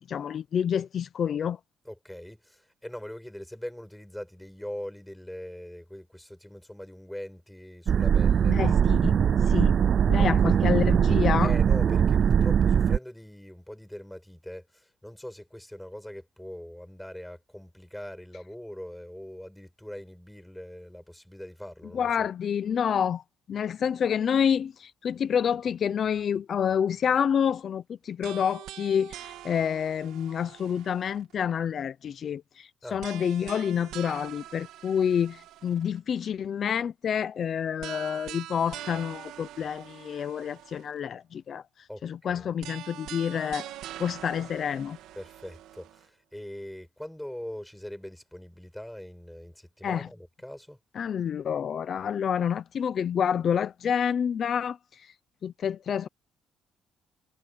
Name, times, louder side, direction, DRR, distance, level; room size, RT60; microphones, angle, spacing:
voice 1, 0.1-1.6 8.4-9.1 9.5-9.8 10.1-11.5 21.9-23.2 23.5-41.6 42.0-43.7 44.0-45.0 49.8-50.1 51.0-54.8 55.4-56.1, left 8 dB, 35° left, 0.6 m, -28 dB
voice 2, 1.8-8.6 10.2-10.6 11.4-22.3 32.8-33.0 41.9-42.0 42.3-42.5 45.2-50.8, left 1 dB, ahead, 7.6 m, -41 dB
sound 1, 7.9-13.0, right 8 dB, 35° right, 0.4 m, -21 dB
sound 2, 28.2-31.4 33.0-36.0 37.8-41.0 42.6-46.0, right 13 dB, 85° right, 3.1 m, -44 dB
cardioid pair, 175°, 0 cm